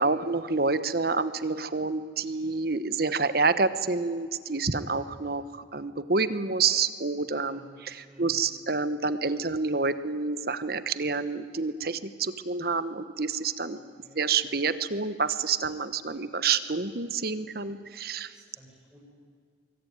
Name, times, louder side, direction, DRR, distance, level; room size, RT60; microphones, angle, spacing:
voice 1, 0.0-13.8 14.2-18.3, right 4 dB, 55° right, 13 dB, 1.2 m, -28 dB
voice 2, 7.4-7.8 8.0-8.4 13.7-14.2 18.3-19.1, right 1 dB, 5° right, -6 dB, 7.7 m, -53 dB
24.5 x 23.5 x 9.5 m, 2.1 s
head